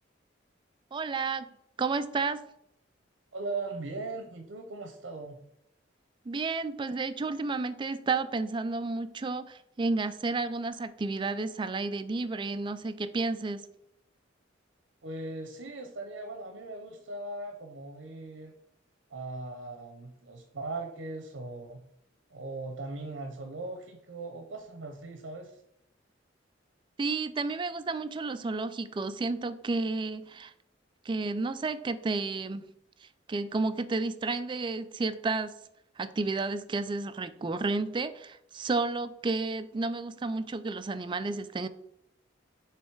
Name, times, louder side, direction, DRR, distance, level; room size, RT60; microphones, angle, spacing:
voice 1, 0.9-1.4 1.8-2.4 6.3-13.7 27.0-30.5 31.1-32.7 33.3-35.5 36.0-41.7, right 3 dB, 25° right, 11 dB, 0.3 m, -31 dB
voice 2, 3.3-5.4 15.0-18.5 19.1-21.8 22.3-25.6, right 2 dB, 80° right, 5 dB, 0.7 m, -39 dB
6.7 x 3.1 x 4.7 m, 0.76 s
head